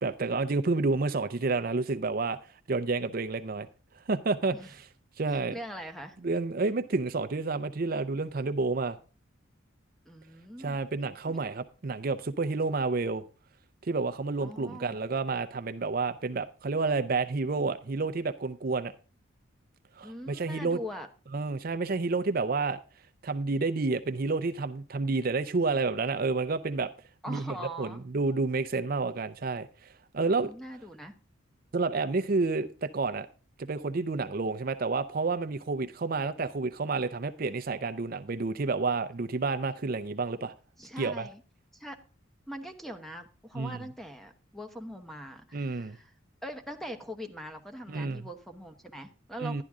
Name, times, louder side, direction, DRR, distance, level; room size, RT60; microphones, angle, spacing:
voice 1, 0.0-2.4 2.7-3.7 4.1-4.9 5.2-5.6 6.2-9.0 10.6-13.2 13.8-18.9 20.0-20.8 21.3-22.8 23.2-26.9 27.3-30.5 31.7-33.3 33.6-40.5 41.0-41.3 43.6-43.8 45.5-46.0 47.9-48.3 49.4-49.6, right 3 dB, 45° right, 0.5 m, -30 dB
voice 2, 5.3-6.2 10.1-10.8 11.3-11.4 14.4-15.0 20.0-21.1 27.2-28.0 30.3-31.1 40.8-41.4 41.7-42.0 42.5-46.1 46.4-49.6, equal, ahead, 1.0 m, -42 dB
11.5 x 11.0 x 3.6 m
head